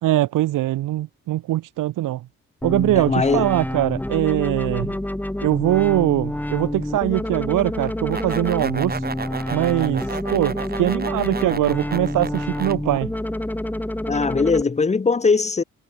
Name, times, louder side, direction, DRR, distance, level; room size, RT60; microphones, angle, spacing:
voice 1, 0.0-2.3 2.6-4.9 5.4-9.0 9.5-13.1, right 15 dB, 90° right, 0.6 m, -22 dB
sound 1, 2.6-14.6, left 1 dB, 5° left, 2.7 m, -28 dB
voice 2, 3.0-3.5 4.8-5.0 14.1-15.6, left 4 dB, 20° left, 1.0 m, -20 dB
sound 2, 7.8-12.8, right 5 dB, 30° right, 2.7 m, -33 dB
wide cardioid pair, 140°, 31 cm